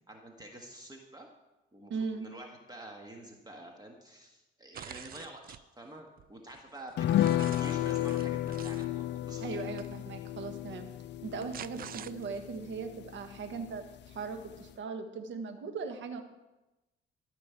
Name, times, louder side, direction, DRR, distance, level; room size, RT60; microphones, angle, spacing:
voice 1, 0.1-1.3 1.7-9.6, right 1 dB, 20° right, 1 dB, 1.6 m, -48 dB
voice 2, 1.9-2.3 9.4-10.9 11.2-16.2, right 5 dB, 70° right, 6 dB, 1.5 m, -39 dB
sound 1, 4.7-5.6 6.2-8.9 9.8-9.9 11.1-12.6, right 10 dB, 50° right, 0.4 m, -47 dB
sound 2, 7.0-13.8 14.1-14.2 14.5-14.7, left 13 dB, 65° left, 0.4 m, -33 dB
13.5 x 5.3 x 8.3 m, 1.0 s
cardioid pair, 90°, 20 cm